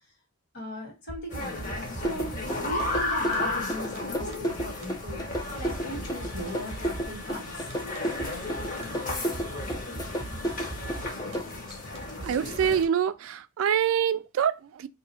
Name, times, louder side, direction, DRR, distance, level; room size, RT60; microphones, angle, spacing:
voice 1, 0.5-1.6 1.9-2.4 2.6-5.2 5.6-7.7, equal, 55° left, 1.6 m, -39 dB
sound 1, 1.1-12.9, right 2 dB, 35° right, 0.8 m, -40 dB
sound 2, 1.3-12.8, left 2 dB, 40° left, 1.0 m, -34 dB
sound 3, 2.0-11.4, equal, 20° left, 0.5 m, -32 dB
voice 2, 12.2-14.9, right 8 dB, 75° right, 0.3 m, -25 dB
2.6 x 2.5 x 4.1 m
head